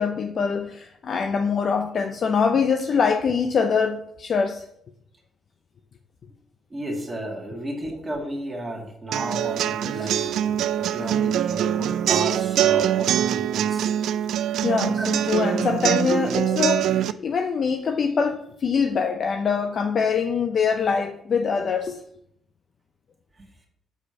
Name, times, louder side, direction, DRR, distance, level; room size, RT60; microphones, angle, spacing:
voice 1, 0.0-4.6 9.9-10.3 14.6-22.0, left 6 dB, 50° left, 0.7 m, -24 dB
voice 2, 6.7-13.9 15.0-15.1 16.3-16.6, right 1 dB, 25° right, 2.0 m, -33 dB
sound 1, 9.1-17.1, right 10 dB, 80° right, 0.3 m, -23 dB
6.8 x 4.8 x 7.0 m
cardioid pair, 90°, 0 cm